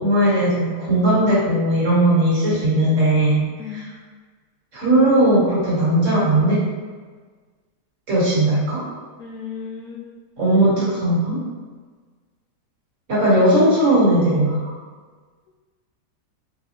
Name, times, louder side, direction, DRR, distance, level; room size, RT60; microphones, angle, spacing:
voice 1, 0.0-3.4 3.7-3.8 4.7-6.6 8.1-8.8 10.4-11.4 13.1-14.6, right 1 dB, 50° right, -8 dB, 1.7 m, -18 dB
voice 2, 3.6-3.9 9.2-10.1, left 7 dB, 70° left, 0 dB, 1.0 m, -35 dB
4.0 x 3.5 x 2.8 m, 1.5 s
omnidirectional pair, 1.7 m